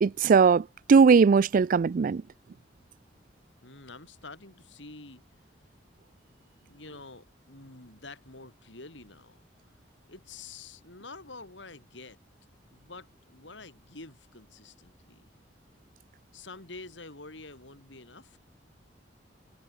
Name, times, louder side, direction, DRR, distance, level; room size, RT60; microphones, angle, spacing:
voice 1, 0.0-2.2, right 5 dB, 50° right, 0.3 m, -20 dB
voice 2, 3.6-5.2 6.6-9.4 10.1-12.2 12.7-15.3 16.3-18.4, left 3 dB, 80° left, 5.0 m, -47 dB
head